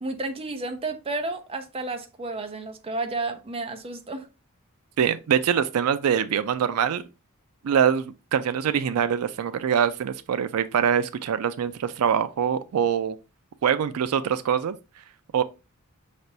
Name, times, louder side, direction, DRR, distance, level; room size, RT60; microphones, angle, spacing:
voice 1, 0.0-4.3, right 2 dB, 25° right, 0.6 m, -31 dB
voice 2, 5.0-7.0 7.6-13.2 13.6-14.8 15.3-15.4, right 8 dB, 80° right, 0.4 m, -24 dB
5.8 x 3.4 x 2.7 m
head